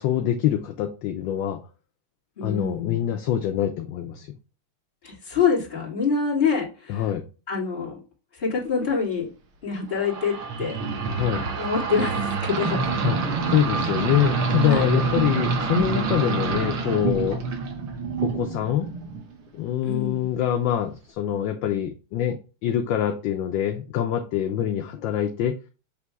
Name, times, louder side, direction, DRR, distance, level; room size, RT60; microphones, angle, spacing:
voice 1, 0.0-1.6 2.4-4.3 6.9-7.3 11.1-11.5 13.0-13.2 13.4-17.4 18.2-18.9 19.5-25.6, left 10 dB, 75° left, 6 dB, 1.2 m, -25 dB
voice 2, 2.4-3.2 5.0-7.1 7.5-8.0 8.4-9.3 9.6-10.8 11.6-12.9 14.7-14.8 19.8-20.3, left 5 dB, 25° left, -5 dB, 2.1 m, -26 dB
sound 1, 10.0-19.3, right 4 dB, 75° right, 2.0 m, -26 dB
6.9 x 3.0 x 4.7 m, 0.34 s
omnidirectional pair, 2.4 m